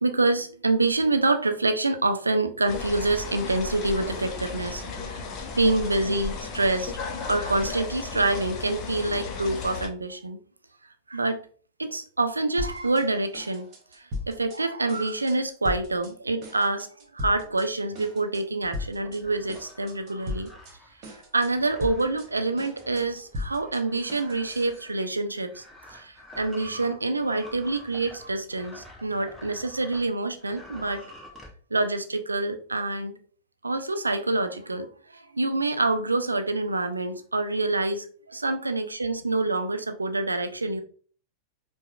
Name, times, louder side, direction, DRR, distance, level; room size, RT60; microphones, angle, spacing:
voice 1, 0.0-5.2 5.5-6.9 7.3-10.4 11.1-11.4 11.8-16.9 17.1-20.5 21.3-25.6 25.9-31.1 31.7-33.2 33.6-40.8, right 2 dB, 80° right, 8 dB, 0.3 m, -26 dB
sound 1, 2.7-9.9, left 4 dB, 35° left, 0.6 m, -35 dB
sound 2, 12.6-13.1 13.3-14.6 14.9-15.4 15.6-16.1 16.4-17.7 17.9-18.4 18.7-19.2 19.5-20.7 21.0-21.5 21.8-24.8, left 3 dB, 35° right, 1.1 m, -37 dB
sound 3, 18.6-30.1 30.4-31.5, left 1 dB, ahead, 0.9 m, -49 dB
4.6 x 2.0 x 2.3 m, 0.43 s
figure-of-eight pair, 90°, 0 cm